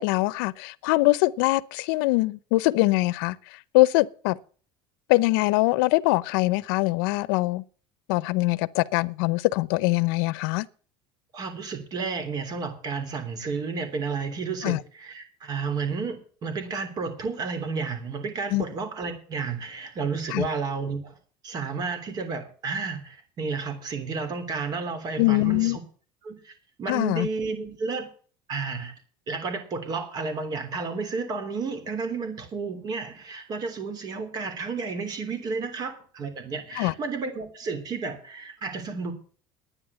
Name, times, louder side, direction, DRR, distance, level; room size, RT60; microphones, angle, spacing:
voice 1, 0.0-3.4 3.7-4.4 5.1-7.6 8.1-10.7 14.6-14.8 18.5-18.6 20.3-20.5 25.2-25.8 26.9-27.3 36.8-36.9, left 21 dB, 85° left, 0.7 m, -23 dB
voice 2, 11.3-21.2 21.4-25.8 26.2-26.5 26.8-28.1 28.5-28.9 29.3-39.1, right 4 dB, 35° right, 3.2 m, -32 dB
11.0 x 9.6 x 7.0 m
cardioid pair, 145°, 12 cm